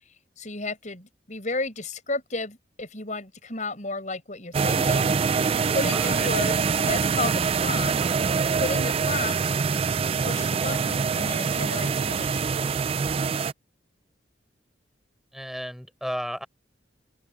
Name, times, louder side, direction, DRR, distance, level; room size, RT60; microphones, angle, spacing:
voice 1, 0.4-8.0 8.5-9.4 10.2-12.8, left 3 dB, 40° left, 7.6 m, -33 dB
sound 1, 4.5-13.5, right 5 dB, 30° right, 0.3 m, -24 dB
voice 2, 5.9-6.4 15.3-16.5, equal, ahead, 4.6 m, -33 dB
head